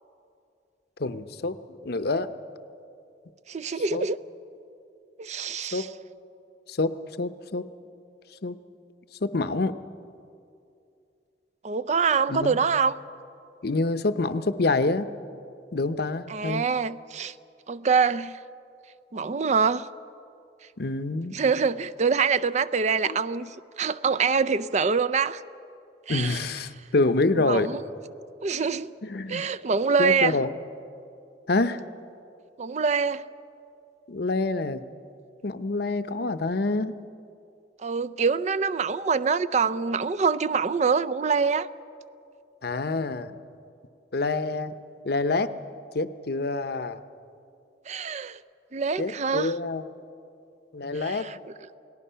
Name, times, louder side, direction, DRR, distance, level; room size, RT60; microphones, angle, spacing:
voice 1, 1.0-2.3 3.9-4.0 5.7-5.9 6.7-7.6 8.4-8.6 9.2-9.8 12.3-12.5 13.6-15.1 15.7-16.7 20.8-21.4 23.0-23.2 26.1-27.7 29.0-29.4 30.0-30.5 31.5-31.8 34.1-34.8 35.4-37.0 42.6-43.4 44.1-44.7 45.0-45.5 45.9-47.0 49.0-49.8 50.7-51.3, left 3 dB, 60° left, 11 dB, 0.8 m, -27 dB
voice 2, 3.5-4.2 5.2-5.9 11.6-12.9 16.3-17.3 17.7-18.4 19.1-19.9 21.3-23.5 23.8-25.4 26.1-26.4 27.4-27.8 28.4-28.9 29.3-30.4 32.6-33.2 37.8-41.7 47.9-48.4 48.7-49.5 50.9-51.4, right 5 dB, 40° right, 13 dB, 0.5 m, -25 dB
29.0 x 18.5 x 5.7 m, 2.6 s
head